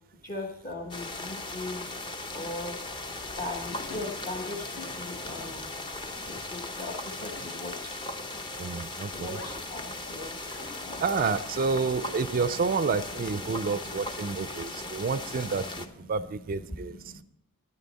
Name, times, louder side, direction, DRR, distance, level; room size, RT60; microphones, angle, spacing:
voice 1, 0.2-1.9 2.3-2.8 3.4-5.7 6.3-8.0 9.1-10.4 10.8-11.0 13.5-15.2 15.6-16.1 16.4-17.2, left 2 dB, 35° left, -2 dB, 1.2 m, -40 dB
sound 1, 0.9-15.9, left 2 dB, 20° left, 0.7 m, -38 dB
Zipper (clothing), 1.5-12.6, left 2 dB, 80° left, 4.0 m, -49 dB
voice 2, 8.6-9.4 11.0-17.1, right 5 dB, 40° right, 14 dB, 0.4 m, -29 dB
12.5 x 9.9 x 4.1 m, 0.80 s
head